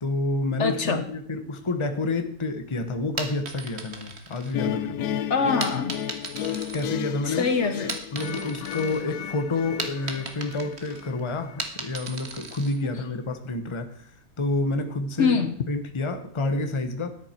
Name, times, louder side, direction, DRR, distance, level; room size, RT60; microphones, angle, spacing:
voice 1, 0.0-5.1 6.7-7.5 8.1-14.1 14.4-15.4 15.7-17.2, left 2 dB, 25° left, 7 dB, 1.0 m, -29 dB
voice 2, 0.6-1.0 5.3-6.0 7.2-8.0 13.0-13.1 15.2-15.6, left 5 dB, 55° left, 8 dB, 1.2 m, -24 dB
sound 1, 3.0-5.0 5.6-7.4 7.7-9.0 9.4-12.8, right 4 dB, 50° right, 1.7 m, -36 dB
sound 2, 4.5-11.6, left 10 dB, 90° left, 1.1 m, -33 dB
13.5 x 10.5 x 4.4 m, 0.62 s
omnidirectional pair, 1.5 m